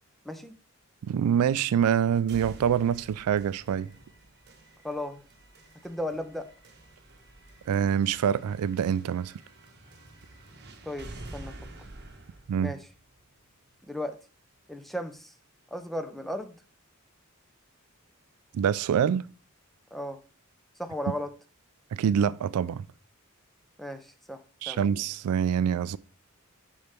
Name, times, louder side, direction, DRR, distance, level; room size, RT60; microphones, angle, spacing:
voice 1, 1.0-3.9 7.7-9.3 12.5-12.7 18.5-19.3 21.9-22.9 24.6-26.0, right 8 dB, 90° right, 0.3 m, -25 dB
sound 1, 2.3-14.2, right 2 dB, 50° right, 1.1 m, -49 dB
voice 2, 4.8-5.2 5.8-6.5 10.8-11.5 12.6-12.8 13.9-14.1 14.7-15.3 15.7-16.6 19.9-20.2 20.8-21.3 23.8-24.8, left 1 dB, ahead, 0.5 m, -35 dB
6.7 x 5.5 x 3.5 m
head